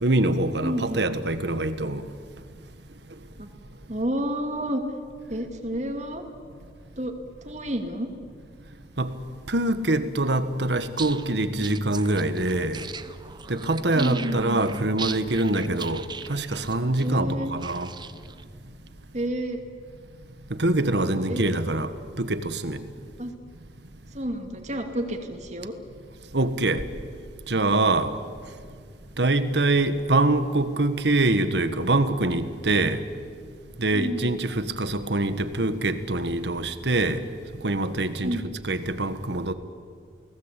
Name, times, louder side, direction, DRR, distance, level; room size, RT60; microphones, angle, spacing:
voice 1, 0.0-2.0 9.0-9.2 9.5-12.8 13.5-17.9 20.5-22.8 26.3-26.9 27.5-28.1 29.2-33.0 33.8-37.2 37.6-39.5, right 2 dB, 75° right, 1.5 m, -24 dB
voice 2, 0.6-1.0 3.4-3.5 3.9-4.8 5.3-6.2 7.0-7.1 7.4-8.1 13.9-14.6 17.0-17.5 19.1-19.6 21.3-21.4 23.2-23.3 24.1-25.7 33.9-34.3 38.2-38.5, right 1 dB, 40° right, 2.6 m, -30 dB
sound 1, 10.8-18.4, right 6 dB, 25° right, 0.8 m, -39 dB
29.0 x 19.0 x 8.4 m
head